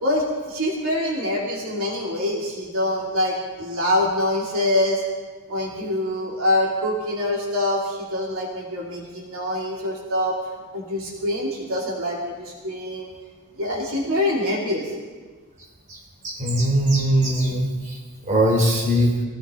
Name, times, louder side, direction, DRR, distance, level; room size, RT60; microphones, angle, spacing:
voice 1, 0.0-5.0 5.5-10.4 10.7-13.1 13.6-14.9, left 1 dB, 65° right, -3 dB, 2.9 m, -25 dB
voice 2, 16.2-18.0 18.3-19.1, right 1 dB, 35° right, -2 dB, 3.3 m, -20 dB
23.0 x 16.5 x 3.8 m, 1.4 s
head